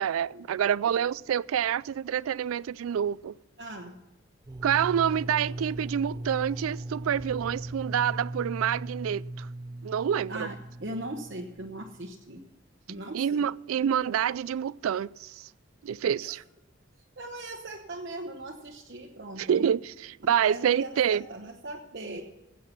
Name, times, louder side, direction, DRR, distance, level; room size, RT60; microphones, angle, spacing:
voice 1, 0.0-3.3 4.6-9.5 9.8-10.5 13.1-15.5 15.8-16.4 19.4-21.2, right 9 dB, 90° right, 0.3 m, -27 dB
voice 2, 3.6-4.0 10.3-12.4 12.9-13.5 16.2-16.4 17.2-19.7 20.4-22.2, right 1 dB, 55° right, 1.0 m, -39 dB
sound 1, 4.4-12.2, right 1 dB, 20° right, 0.5 m, -38 dB
16.5 x 8.4 x 5.8 m
head